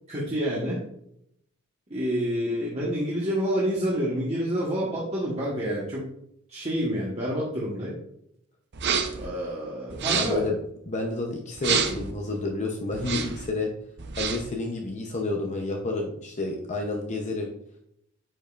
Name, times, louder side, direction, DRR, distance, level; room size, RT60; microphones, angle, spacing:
voice 1, 0.1-0.8 1.9-6.1 6.5-8.0 9.1-10.4, equal, 30° right, -6 dB, 1.3 m, -28 dB
sound 1, 8.7-9.3 9.9-10.5 11.6-12.1 12.9-13.5 14.0-14.5, right 6 dB, 50° right, 0.7 m, -28 dB
voice 2, 10.1-10.6 10.9-13.7 14.2-17.5, left 2 dB, 35° left, 1 dB, 0.7 m, -30 dB
9.0 x 5.3 x 2.5 m, 0.73 s
head